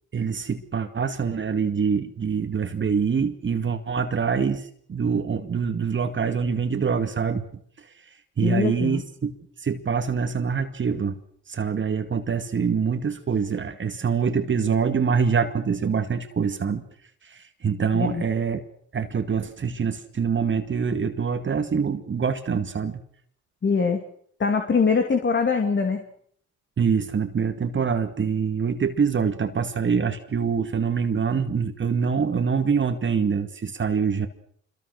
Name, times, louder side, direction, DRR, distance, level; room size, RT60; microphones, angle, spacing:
voice 1, 0.1-4.6 4.9-7.4 8.4-9.3 9.6-11.2 11.5-16.8 17.3-18.6 18.9-23.0 26.8-34.3, right 6 dB, 40° right, 7 dB, 2.2 m, -25 dB
voice 2, 8.4-9.0 17.9-18.2 23.6-24.0 24.4-26.0, left 5 dB, 40° left, 5 dB, 2.8 m, -22 dB
26.0 x 22.5 x 6.5 m, 0.63 s
cardioid pair, 90°, 30 cm